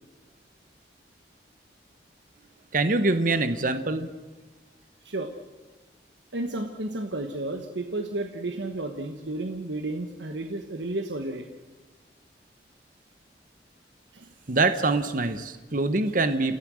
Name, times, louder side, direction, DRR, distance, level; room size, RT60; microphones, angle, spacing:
voice 1, 2.7-4.1 14.5-16.6, right 3 dB, 50° right, 10 dB, 1.1 m, -24 dB
voice 2, 5.0-5.3 6.3-11.5 14.1-14.3, right 2 dB, 85° right, 5 dB, 1.3 m, -32 dB
28.5 x 16.0 x 6.4 m, 1.3 s
head